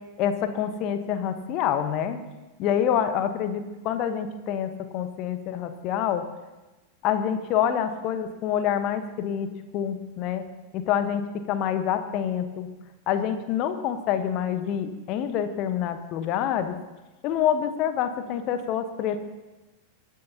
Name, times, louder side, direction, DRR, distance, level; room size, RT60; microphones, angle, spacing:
voice 1, 0.2-2.2 2.6-6.2 7.0-9.5 9.7-10.4 10.7-12.7 13.1-16.7 17.2-19.2, left 9 dB, 40° left, 9 dB, 1.1 m, -27 dB
24.0 x 10.5 x 2.9 m, 1.1 s
figure-of-eight pair, 90°, 0 cm